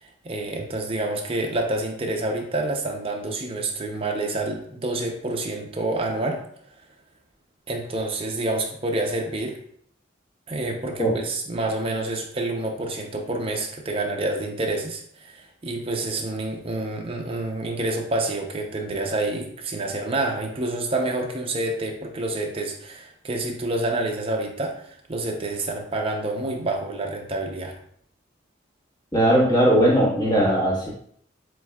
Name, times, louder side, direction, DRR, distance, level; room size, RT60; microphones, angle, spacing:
voice 1, 0.0-6.4 7.7-9.6 10.5-27.8, right 2 dB, 30° right, 1 dB, 0.6 m, -28 dB
voice 2, 29.1-30.9, right 1 dB, 20° left, -5 dB, 1.4 m, -19 dB
7.6 x 2.7 x 2.3 m, 0.64 s
head